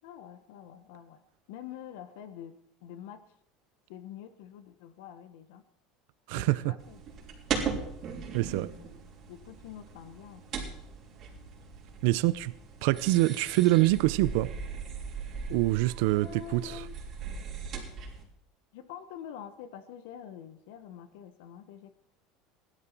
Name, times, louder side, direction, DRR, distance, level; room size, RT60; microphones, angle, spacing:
voice 1, 0.0-1.2 1.5-3.3 3.9-5.6 6.3-7.0 9.3-10.4 16.1-17.0 18.7-21.9, left 10 dB, 75° left, 1.1 m, -46 dB
voice 2, 6.3-6.7 8.3-8.7 12.0-12.5 12.8-14.5 15.5-16.8, right 18 dB, 70° right, 0.5 m, -25 dB
sound 1, 6.8-18.2, right 6 dB, 40° right, 3.7 m, -39 dB
16.5 x 12.0 x 4.5 m
supercardioid pair, 135°, 0 cm